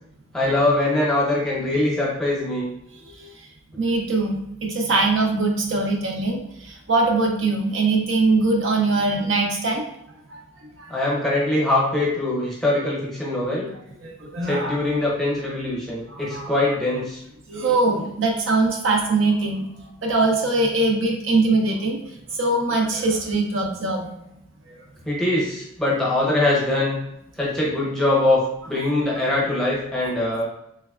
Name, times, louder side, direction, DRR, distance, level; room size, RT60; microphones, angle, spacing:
voice 1, 0.3-2.7 10.9-13.7 14.4-17.2 25.0-27.0 27.4-28.4 28.7-30.5, left 2 dB, ahead, -6 dB, 0.8 m, -22 dB
voice 2, 3.8-9.8 10.3-10.4 10.8-10.9 14.0-14.8 16.1-16.5 17.5-19.7 20.0-24.1 24.7-24.8 29.1-29.2, right 3 dB, 65° right, 1 dB, 0.5 m, -22 dB
3.3 x 3.2 x 2.3 m, 0.79 s
head